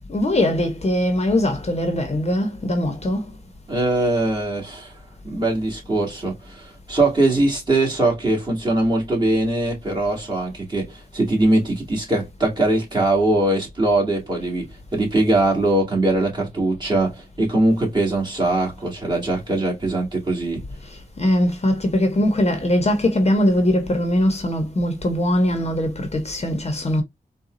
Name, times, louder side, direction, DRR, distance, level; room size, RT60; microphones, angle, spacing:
voice 1, 0.1-3.4 20.8-27.0, left 1 dB, 40° left, 0.9 m, -21 dB
voice 2, 3.7-4.9 5.2-20.6, right 2 dB, 30° right, 2.0 m, -21 dB
4.0 x 2.3 x 2.5 m
wide cardioid pair, 85°, 16 cm